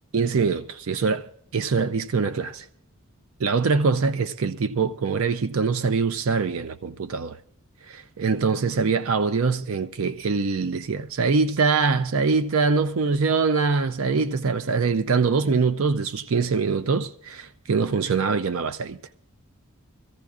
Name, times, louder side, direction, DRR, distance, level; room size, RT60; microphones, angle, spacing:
voice 1, 0.1-2.7 3.4-7.4 7.9-19.0, right 4 dB, 65° right, 0.5 m, -23 dB
22.5 x 15.0 x 2.4 m
head